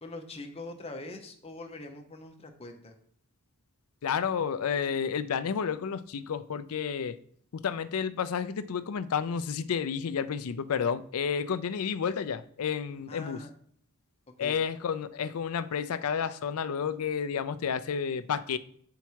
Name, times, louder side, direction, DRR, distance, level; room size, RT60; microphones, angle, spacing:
voice 1, 0.0-2.9 13.1-13.5 14.4-14.6, left 2 dB, 25° left, 0.9 m, -43 dB
voice 2, 4.0-7.2 7.5-13.4 14.4-18.6, left 7 dB, 75° left, 0.4 m, -31 dB
7.0 x 4.6 x 4.6 m
head